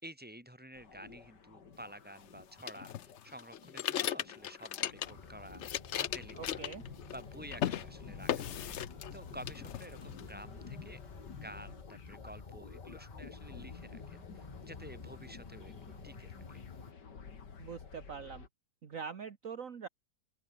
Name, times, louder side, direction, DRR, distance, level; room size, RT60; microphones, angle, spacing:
voice 1, 0.0-5.7 5.9-6.6 7.1-8.7 9.1-11.0 11.3-16.6, right 1 dB, 5° right, 4.9 m, -51 dB
sound 1, 0.7-18.5, left 5 dB, 80° left, 2.9 m, -52 dB
sound 2, 2.7-5.3 5.5-7.2 7.5-7.8 8.3-9.2 9.5-10.2, left 11 dB, 60° left, 0.8 m, -36 dB
sound 3, 5.0-16.9, left 4 dB, 30° left, 1.5 m, -51 dB
voice 2, 6.3-6.8 17.6-18.5 18.8-19.9, right 6 dB, 50° right, 1.7 m, -43 dB
open air
omnidirectional pair, 1.8 m